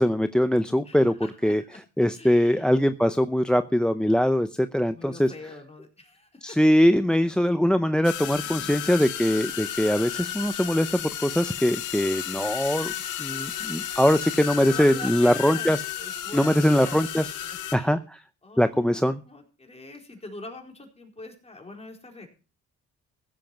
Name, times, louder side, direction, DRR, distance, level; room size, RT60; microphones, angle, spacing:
voice 1, 0.0-1.1 1.4-1.6 2.0-5.3 6.4-12.9 13.2-15.8 16.3-17.3 17.7-18.2 18.6-19.2, equal, 5° left, 11 dB, 0.6 m, -22 dB
voice 2, 0.8-1.8 2.1-2.7 4.9-6.6 8.3-8.9 14.7-17.1 17.4-17.9 18.4-22.3, left 2 dB, 20° left, 2 dB, 4.2 m, -44 dB
sound 1, 8.0-17.8, left 11 dB, 85° left, 1.6 m, -33 dB
15.5 x 7.6 x 5.8 m, 0.35 s
cardioid pair, 90°, 30 cm